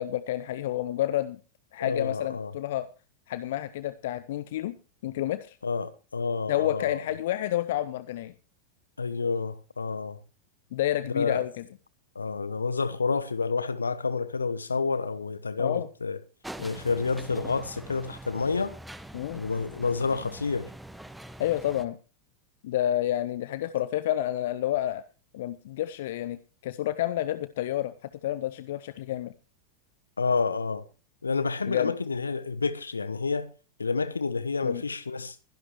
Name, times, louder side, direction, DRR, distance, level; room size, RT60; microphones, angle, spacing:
voice 1, 0.0-1.4 1.7-2.9 3.3-4.8 5.0-5.6 6.5-8.3 10.7-11.6 15.6-15.9 19.1-19.4 21.4-22.0 22.6-25.0 25.3-27.9 28.2-29.3 31.6-31.9 34.6-34.8, left 13 dB, 55° left, 0.6 m, -29 dB
voice 2, 1.8-2.5 5.6-7.0 9.0-10.2 11.1-11.4 12.1-16.2 16.6-18.7 19.3-20.7 30.2-30.8 31.2-33.5 33.8-35.4, left 4 dB, 75° left, 1.0 m, -29 dB
sound 1, 16.4-21.8, right 1 dB, 5° right, 0.9 m, -44 dB
21.0 x 11.0 x 3.0 m
figure-of-eight pair, 90°, 0 cm